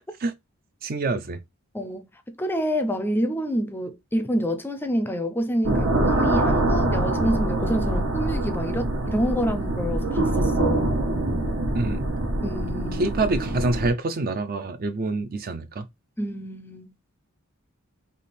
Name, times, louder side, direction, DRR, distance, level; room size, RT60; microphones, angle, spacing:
voice 1, 0.8-1.4 11.8-12.0 12.9-15.9, right 2 dB, 45° right, 0.5 m, -26 dB
voice 2, 2.3-10.9 12.4-13.1 16.2-16.9, equal, 10° left, 0.5 m, -27 dB
sound 1, 5.6-13.9, right 1 dB, 75° right, 1.2 m, -24 dB
3.5 x 2.8 x 4.1 m
head